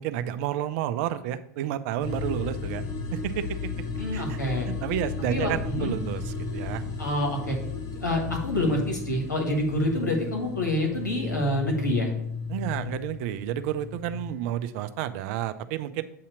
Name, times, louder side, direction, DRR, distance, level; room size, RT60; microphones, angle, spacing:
voice 1, 0.0-2.8 3.1-3.6 4.1-4.4 4.7-6.8 12.5-16.0, right 11 dB, 55° right, 12 dB, 0.5 m, -30 dB
sound 1, 2.0-14.3, left 4 dB, 40° left, 0.9 m, -34 dB
voice 2, 4.0-4.7 5.3-5.9 7.0-7.6 8.0-12.1, left 1 dB, 90° left, 0 dB, 1.6 m, -27 dB
8.3 x 2.8 x 6.2 m, 0.73 s
figure-of-eight pair, 90°, 9 cm